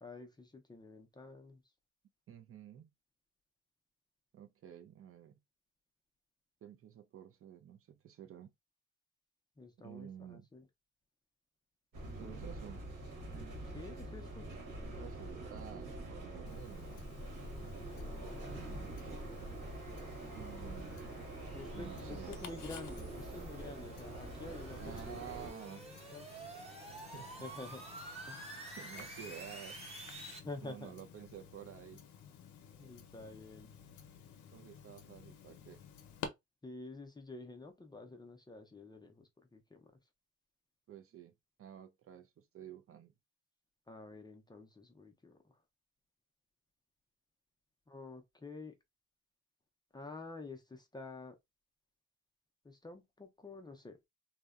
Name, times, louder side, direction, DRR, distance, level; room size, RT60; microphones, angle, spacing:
voice 1, 0.0-1.6 9.6-10.6 13.6-14.5 17.9-18.9 21.5-25.2 26.1-26.3 27.4-27.9 28.2-28.4 30.4-30.9 32.8-33.7 36.6-39.9 43.9-45.4 47.9-48.8 49.9-51.4 52.6-54.0, left 3 dB, 15° left, 0.4 m, -49 dB
voice 2, 2.3-2.9 4.3-5.4 6.6-8.5 9.8-10.5 12.1-12.8 15.0-17.0 17.6-17.8 18.1-18.2 18.7-19.0 20.3-21.0 21.7-22.4 24.8-25.9 27.1-27.4 28.3-29.8 30.6-32.0 34.5-35.8 40.9-43.1, right 9 dB, 50° right, 0.5 m, -51 dB
sound 1, 11.9-25.5, right 2 dB, 80° right, 1.2 m, -45 dB
Tick-tock, 16.5-36.3, left 7 dB, 70° left, 0.6 m, -53 dB
sound 2, 20.2-30.4, right 2 dB, 20° right, 1.0 m, -51 dB
2.7 x 2.1 x 2.3 m
cardioid pair, 90°, 30 cm